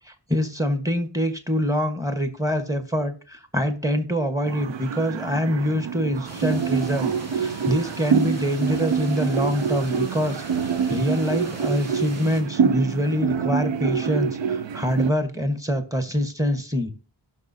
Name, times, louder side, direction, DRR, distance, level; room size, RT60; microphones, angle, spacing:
voice 1, 0.0-16.9, equal, 10° right, 8 dB, 1.2 m, -25 dB
sound 1, 4.5-15.1, right 7 dB, 85° right, 0.6 m, -26 dB
sound 2, 6.2-12.4, right 1 dB, 35° right, 2.0 m, -40 dB
16.5 x 6.0 x 2.7 m, 0.39 s
wide cardioid pair, 95°, 44 cm